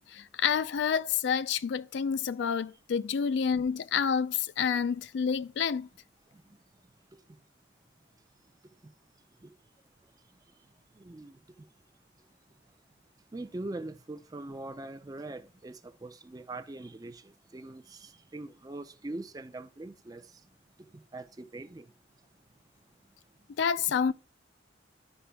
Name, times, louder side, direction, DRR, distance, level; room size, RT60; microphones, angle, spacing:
voice 1, 0.0-5.9 23.6-24.1, left 7 dB, 65° left, 0.3 m, -29 dB
voice 2, 10.3-10.6 10.9-11.7 12.2-12.3 13.3-20.5 20.8-21.9, right 2 dB, 20° right, 0.3 m, -43 dB
12.5 x 5.0 x 2.2 m
head